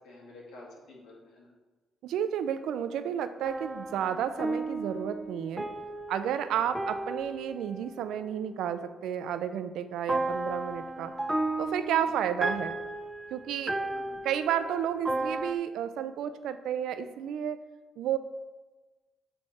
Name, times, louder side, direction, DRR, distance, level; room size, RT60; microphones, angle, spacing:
voice 1, 0.0-1.5 6.6-6.8 12.0-12.2 13.9-14.3, left 2 dB, 80° left, -2 dB, 1.6 m, -50 dB
voice 2, 2.0-5.7 6.1-11.1 11.6-12.8 13.3-13.8 14.2-17.6 18.0-18.2, right 9 dB, 80° right, 11 dB, 0.4 m, -31 dB
sound 1, 3.4-8.8 10.1-15.5, right 2 dB, 10° right, 0.4 m, -34 dB
8.1 x 3.2 x 4.2 m, 1.3 s
cardioid pair, 90°, 0 cm